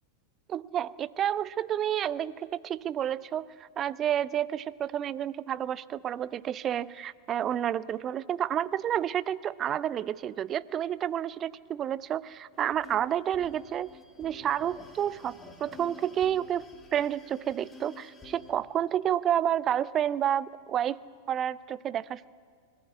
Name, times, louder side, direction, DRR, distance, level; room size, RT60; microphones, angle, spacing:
voice 1, 0.5-13.9 14.2-21.0 21.3-22.2, right 10 dB, 30° right, 20 dB, 0.5 m, -30 dB
sound 1, 12.5-18.5, left 4 dB, 15° left, 2.7 m, -51 dB
24.0 x 14.5 x 9.5 m, 2.1 s
figure-of-eight pair, 90°, 0 cm